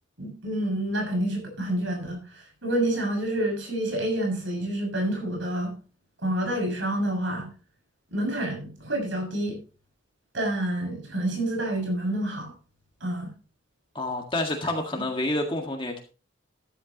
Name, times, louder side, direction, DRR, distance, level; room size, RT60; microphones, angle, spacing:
voice 1, 0.2-2.2 2.6-5.7 6.2-7.5 8.1-9.6 10.3-12.5 13.0-13.3, right 1 dB, 70° right, 2 dB, 6.7 m, -28 dB
voice 2, 14.0-16.0, left 1 dB, 25° left, 1 dB, 1.8 m, -28 dB
13.5 x 12.0 x 3.0 m, 0.35 s
head